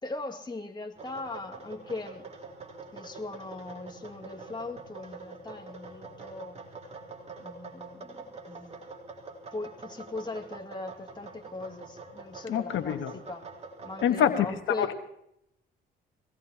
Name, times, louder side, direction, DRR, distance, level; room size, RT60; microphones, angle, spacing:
voice 1, 0.0-2.3 2.9-6.6 7.4-8.7 9.5-13.4 13.8-14.9, left 2 dB, 20° left, 3 dB, 2.3 m, -39 dB
sound 1, 1.0-14.4, right 3 dB, 35° right, 3.9 m, -45 dB
voice 2, 12.5-13.1 14.0-14.9, left 9 dB, 80° left, 7 dB, 1.4 m, -26 dB
23.5 x 18.0 x 2.9 m, 0.76 s
cardioid pair, 90°, 20 cm